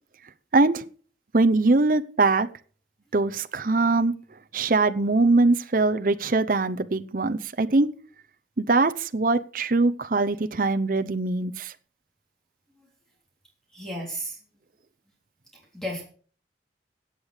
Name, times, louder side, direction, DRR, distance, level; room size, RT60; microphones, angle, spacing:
voice 1, 0.5-0.8 1.3-2.5 3.1-4.1 4.5-7.9 8.6-11.7, right 3 dB, 50° right, 9 dB, 0.7 m, -22 dB
voice 2, 13.7-14.4 15.5-16.0, equal, 5° left, -2 dB, 3.4 m, -34 dB
15.5 x 8.2 x 5.0 m, 0.43 s
head